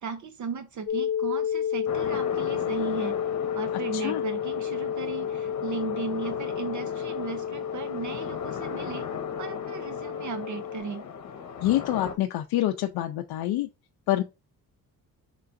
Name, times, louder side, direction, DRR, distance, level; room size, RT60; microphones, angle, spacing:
voice 1, 0.0-3.2 3.5-9.1 9.4-11.1, right 5 dB, 55° right, 0.7 m, -36 dB
sound 1, 0.9-10.8, left 9 dB, 25° left, 1.0 m, -31 dB
sound 2, 1.9-12.1, left 6 dB, 50° left, 0.9 m, -37 dB
voice 2, 3.9-4.2 11.6-13.7 14.1-14.2, left 14 dB, 90° left, 0.5 m, -26 dB
5.6 x 3.7 x 2.5 m
cardioid pair, 125°, 37 cm